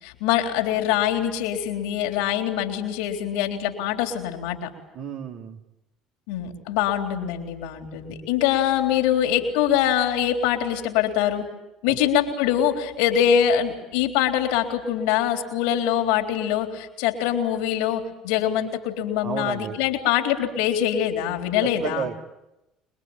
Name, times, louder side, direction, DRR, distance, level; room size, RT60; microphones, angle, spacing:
voice 1, 0.0-4.7 6.3-11.4 11.8-22.1, left 10 dB, 75° left, 4 dB, 3.7 m, -24 dB
voice 2, 4.9-5.6 11.9-12.1 19.2-19.8 21.6-22.2, right 7 dB, 65° right, 3 dB, 2.7 m, -32 dB
26.5 x 22.0 x 9.0 m, 0.97 s
hypercardioid pair, 65°, 0 cm